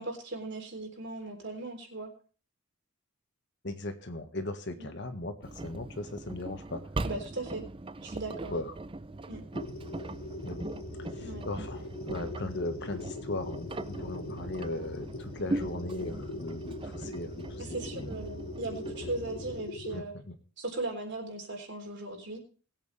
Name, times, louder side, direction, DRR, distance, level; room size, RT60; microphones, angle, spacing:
voice 1, 0.0-2.1 4.8-4.9 7.0-7.6 8.0-8.5 9.3-9.4 11.2-11.4 17.7-20.1 20.6-22.4, right 2 dB, 55° right, 3 dB, 3.7 m, -38 dB
voice 2, 3.6-6.8 8.5-8.7 10.4-10.7 11.1-18.1 19.9-20.4, left 2 dB, 55° left, 7 dB, 1.6 m, -38 dB
Engine, 5.4-19.6, right 2 dB, 25° right, 0.5 m, -40 dB
sound 1, 9.5-20.0, left 2 dB, 75° left, 1.4 m, -41 dB
20.5 x 8.4 x 3.4 m, 0.40 s
head